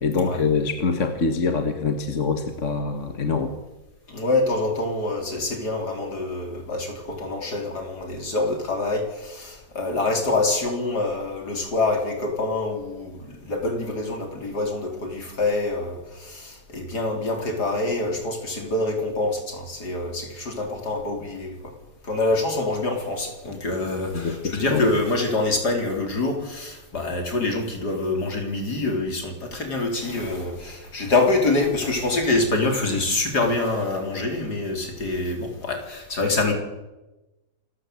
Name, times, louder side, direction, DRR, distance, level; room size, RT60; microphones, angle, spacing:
voice 1, 0.0-3.5 24.1-24.8, left 4 dB, 45° left, 7 dB, 1.9 m, -24 dB
voice 2, 4.1-21.6 22.0-36.5, left 2 dB, 65° left, 3 dB, 4.6 m, -25 dB
27.0 x 14.5 x 8.4 m, 1.1 s
omnidirectional pair, 1.9 m